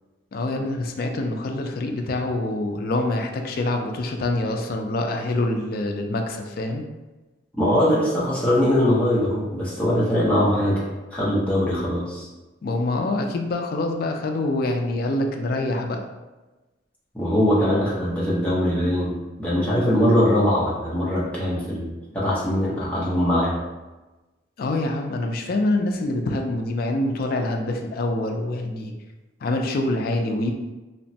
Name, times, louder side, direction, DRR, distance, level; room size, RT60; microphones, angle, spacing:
voice 1, 0.3-6.8 12.6-16.1 24.6-28.9 29.4-30.5, left 2 dB, 50° left, 4 dB, 0.3 m, -25 dB
voice 2, 7.6-10.8 11.1-12.3 17.1-23.6, equal, 5° left, -8 dB, 0.7 m, -21 dB
2.9 x 2.1 x 2.6 m, 1.1 s
head